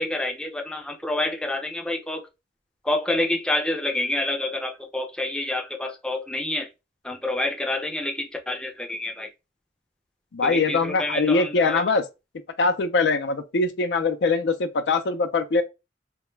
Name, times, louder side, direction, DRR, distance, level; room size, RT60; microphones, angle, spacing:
voice 1, 0.0-2.2 2.8-6.7 7.0-9.3 10.4-11.8, left 2 dB, 5° left, 0.4 m, -28 dB
voice 2, 10.3-12.0 12.6-15.6, left 3 dB, 75° left, 0.5 m, -22 dB
2.2 x 2.2 x 3.1 m
head